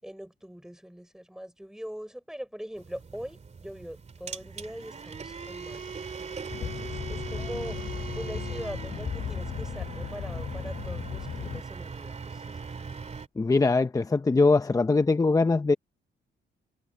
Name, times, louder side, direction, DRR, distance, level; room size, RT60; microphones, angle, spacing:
voice 1, 0.0-5.8 6.6-7.9 8.1-12.6, equal, 5° right, 4.2 m, -42 dB
sound 1, 2.8-13.3, right 5 dB, 35° right, 2.6 m, -40 dB
sound 2, 6.5-11.6, left 8 dB, 55° left, 3.7 m, -36 dB
voice 2, 13.4-15.7, left 3 dB, 15° left, 0.7 m, -22 dB
cardioid pair, 90°, 20 cm